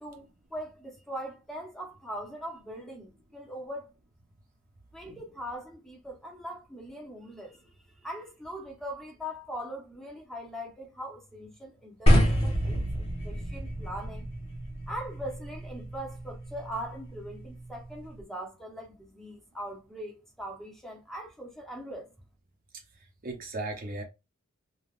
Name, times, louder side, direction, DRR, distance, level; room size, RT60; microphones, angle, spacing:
voice 1, 0.0-3.9 4.9-12.8 13.2-14.3 14.9-22.1, equal, ahead, 0.7 m, -41 dB
sound 1, 12.1-18.2, equal, 30° left, 1.0 m, -28 dB
voice 2, 22.9-24.0, right 2 dB, 45° right, 0.6 m, -37 dB
3.4 x 2.3 x 2.3 m
head